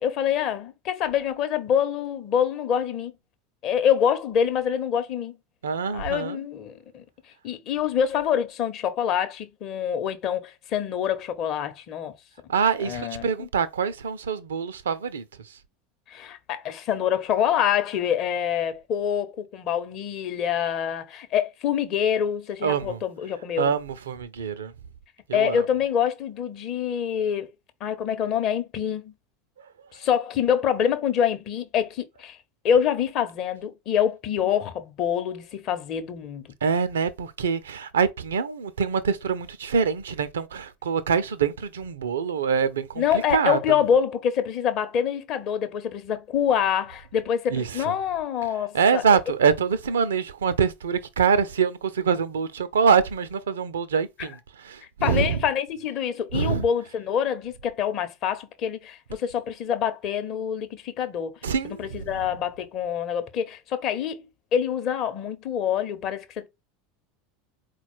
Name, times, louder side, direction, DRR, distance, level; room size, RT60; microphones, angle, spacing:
voice 1, 0.0-3.1 3.6-5.4 5.9-7.0 7.4-12.1 12.8-13.5 16.1-23.7 25.3-27.5 27.8-29.1 29.9-32.4 32.6-36.5 43.0-49.2 54.2-54.3 55.0-61.4 61.6-64.3 64.5-66.5, left 8 dB, 45° left, 0.7 m, -26 dB
voice 2, 5.6-6.4 12.5-15.6 22.6-23.0 23.6-24.7 25.3-25.6 36.6-43.8 47.5-47.9 48.7-55.4 56.3-56.6 61.4-62.2, right 6 dB, 75° right, 0.4 m, -25 dB
4.2 x 2.2 x 4.3 m
figure-of-eight pair, 80°, 0 cm